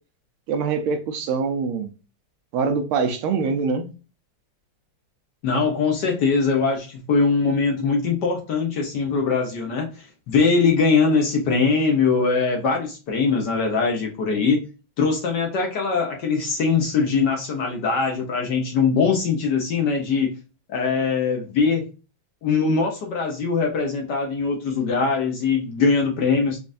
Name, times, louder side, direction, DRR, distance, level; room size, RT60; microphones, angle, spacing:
voice 1, 0.5-1.9 2.5-3.9, right 5 dB, 80° right, 1.6 m, -24 dB
voice 2, 5.4-14.6 15.0-20.3 20.7-21.9 22.4-26.6, left 4 dB, 65° left, 1.2 m, -22 dB
5.3 x 2.4 x 2.5 m
omnidirectional pair, 2.4 m